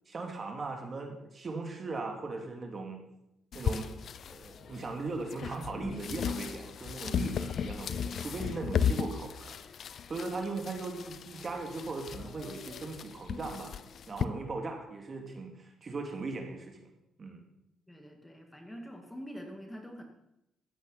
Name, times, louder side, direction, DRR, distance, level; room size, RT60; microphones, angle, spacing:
voice 1, 0.1-3.0 3.5-3.9 4.2-9.6 10.1-13.8 14.1-16.8 17.2-17.4, right 3 dB, 40° right, 3 dB, 2.6 m, -38 dB
sound 1, 3.5-14.3, left 7 dB, 60° left, 0.6 m, -36 dB
voice 2, 17.9-20.0, equal, 10° left, 3 dB, 2.1 m, -45 dB
14.5 x 8.8 x 5.7 m, 0.84 s
cardioid pair, 90°, 0 cm